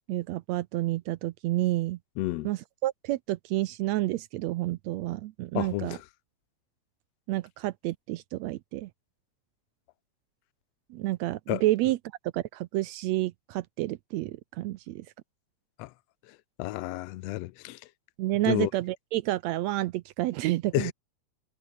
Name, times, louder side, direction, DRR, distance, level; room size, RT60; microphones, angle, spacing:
voice 1, 0.1-2.0 2.4-6.0 7.3-8.9 10.9-12.0 12.3-15.1 18.2-20.9, right 17 dB, 75° right, 1.7 m, -29 dB
voice 2, 2.2-2.5 5.5-6.0 11.5-11.6 15.8-15.9 16.3-17.8 18.4-18.7 20.7-20.9, left 17 dB, 70° left, 1.7 m, -31 dB
omnidirectional pair, 3.4 m